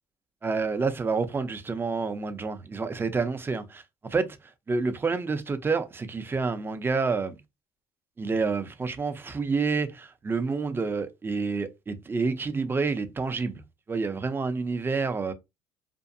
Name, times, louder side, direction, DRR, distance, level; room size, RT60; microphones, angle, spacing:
voice 1, 0.4-7.4 8.2-13.6 13.9-15.3, right 4 dB, 25° right, 0.6 m, -28 dB
2.6 x 2.2 x 2.6 m
supercardioid pair, 80°, 9 cm